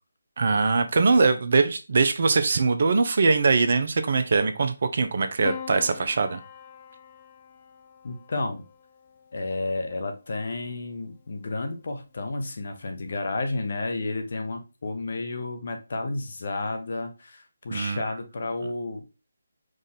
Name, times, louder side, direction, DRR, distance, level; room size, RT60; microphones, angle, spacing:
voice 1, 0.4-6.4 17.7-18.1, right 4 dB, 55° right, 9 dB, 0.7 m, -22 dB
Piano, 5.4-9.9 11.1-11.8, left 8 dB, 30° left, 0.5 m, -43 dB
voice 2, 8.0-8.6 9.3-19.0, left 2 dB, 55° left, 5 dB, 1.0 m, -31 dB
4.9 x 2.6 x 4.0 m, 0.29 s
figure-of-eight pair, 155°, 0 cm